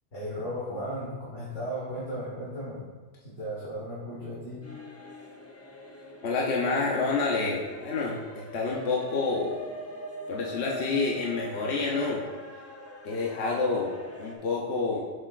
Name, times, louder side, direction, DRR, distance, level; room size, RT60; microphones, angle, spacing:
voice 1, 0.1-2.8 3.2-4.6, equal, 90° left, -8 dB, 1.9 m, -35 dB
sound 1, 4.6-14.4, equal, 20° left, 0.5 m, -42 dB
voice 2, 6.2-9.6 10.3-12.2 13.0-15.1, left 3 dB, 65° left, -3 dB, 1.0 m, -28 dB
7.8 x 6.1 x 2.4 m, 1.4 s
omnidirectional pair, 1.2 m